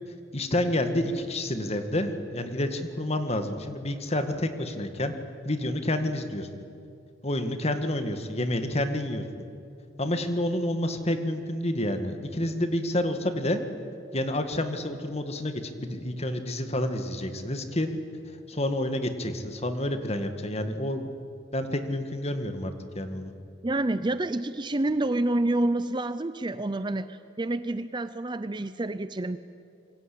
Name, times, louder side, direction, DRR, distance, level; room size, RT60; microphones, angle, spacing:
voice 1, 0.3-5.1 5.5-6.5 7.2-9.2 10.0-13.6 14.1-17.9 18.5-21.1 21.5-23.3, left 1 dB, 30° left, 8 dB, 1.9 m, -29 dB
voice 2, 23.6-29.4, right 2 dB, 25° right, 13 dB, 0.6 m, -28 dB
27.0 x 24.0 x 8.7 m, 2.5 s
head